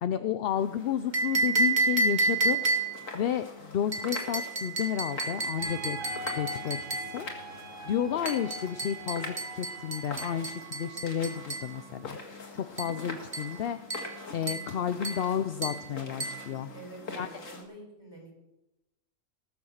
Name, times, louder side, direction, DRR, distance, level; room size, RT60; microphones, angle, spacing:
voice 1, 0.0-2.6 3.1-6.0 6.3-12.2 12.5-13.9 14.3-16.7 17.1-17.3, left 9 dB, 60° left, 11 dB, 0.7 m, -32 dB
sound 1, 0.6-17.6, left 3 dB, 85° left, 2.4 m, -44 dB
sound 2, 1.1-3.1 3.9-7.2 8.3-11.7 12.8-13.0 13.3-13.6 13.9-14.2 14.5-14.7 15.0-15.3 15.6-15.9 16.2-16.5, right 3 dB, 35° right, 1.9 m, -30 dB
sound 3, 5.6-12.0, equal, 80° right, 2.5 m, -43 dB
voice 2, 16.7-18.3, right 2 dB, 20° left, 0 dB, 4.3 m, -47 dB
19.0 x 7.1 x 6.5 m, 0.95 s
omnidirectional pair, 1.3 m